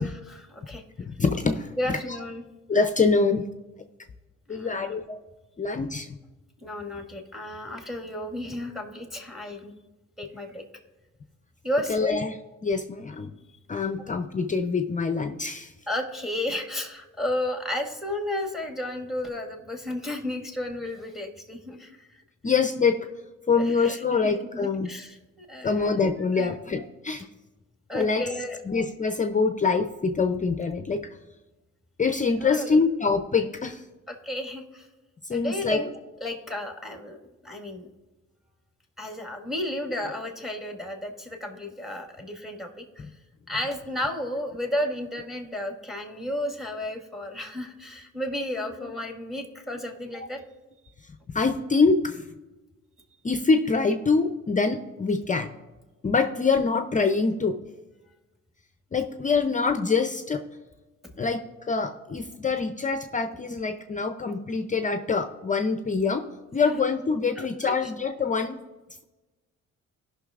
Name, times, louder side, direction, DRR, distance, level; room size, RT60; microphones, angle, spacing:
voice 1, 0.3-0.8 1.8-2.4 4.5-5.0 6.6-9.7 10.2-10.6 11.6-12.0 15.9-22.2 23.6-25.9 26.3-26.6 27.9-28.6 32.4-32.8 34.1-34.9 35.3-35.9 36.2-37.2 37.4-37.9 39.0-43.1 43.5-50.4 67.4-67.9, left 1 dB, ahead, 3 dB, 1.7 m, -33 dB
voice 2, 1.0-1.7 2.7-3.5 4.5-5.2 5.6-6.2 11.9-13.3 13.7-15.7 22.4-23.1 23.5-24.9 25.6-27.3 27.9-28.2 28.7-31.1 32.0-33.8 35.3-35.8 48.8-48.9 51.3-52.2 53.2-55.5 56.0-57.6 58.9-60.4 61.2-66.3 66.5-68.6, left 4 dB, 25° left, 8 dB, 0.5 m, -25 dB
17.0 x 5.9 x 2.4 m, 1.1 s
cardioid pair, 90°, 30 cm